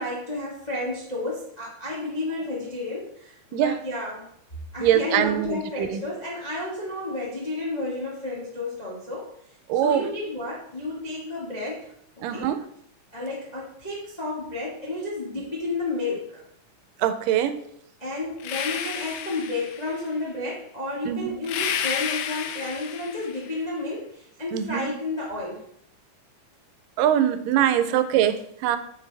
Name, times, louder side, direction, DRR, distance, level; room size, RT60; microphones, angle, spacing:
voice 1, 0.0-4.3 4.7-9.3 9.7-11.9 12.3-12.5 13.1-16.4 17.6-17.7 18.0-25.7, left 2 dB, 60° left, -5 dB, 0.4 m, -31 dB
voice 2, 4.8-6.0 9.7-10.0 12.2-12.6 17.0-17.6 21.1-21.3 24.5-24.9 27.0-28.8, right 10 dB, 85° right, 11 dB, 2.2 m, -23 dB
sound 1, 18.4-20.1 21.4-23.5, left 8 dB, 80° left, 2.2 m, -31 dB
8.2 x 5.3 x 3.3 m, 0.70 s
omnidirectional pair, 3.8 m